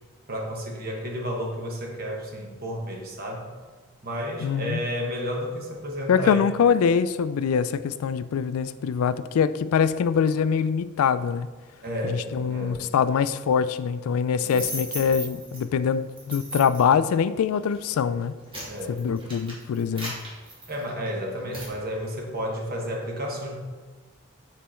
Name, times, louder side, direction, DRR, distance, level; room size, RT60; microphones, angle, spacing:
voice 1, 0.3-3.5 4.0-6.5 11.8-12.9 14.4-14.7 18.6-19.1 20.7-23.6, equal, 45° right, 0 dB, 1.2 m, -32 dB
voice 2, 4.4-4.8 6.1-11.5 12.0-18.4 18.9-20.1, left 7 dB, 80° left, 14 dB, 0.3 m, -24 dB
sound 1, 14.4-15.6 16.2-16.9 17.6-17.8 18.2-21.1 21.5-21.7, right 1 dB, 25° right, 1.6 m, -36 dB
7.5 x 4.1 x 4.4 m, 1.4 s
head